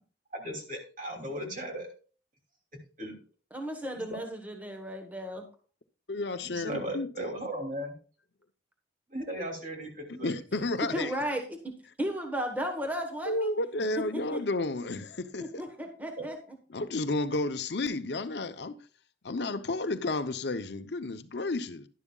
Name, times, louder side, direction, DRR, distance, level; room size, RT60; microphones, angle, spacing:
voice 1, 0.3-1.9 3.0-3.2 3.9-4.2 6.4-7.9 9.1-10.3 16.2-16.3, right 1 dB, 45° right, 2.8 m, -37 dB
voice 2, 3.5-5.5 10.9-11.7 12.0-13.5 14.1-14.4 15.4-16.4, equal, 10° right, 1.2 m, -34 dB
voice 3, 6.1-7.3 10.2-11.1 13.3-15.5 16.7-18.7 19.2-21.9, left 2 dB, 70° left, 0.7 m, -32 dB
11.0 x 11.0 x 2.3 m
head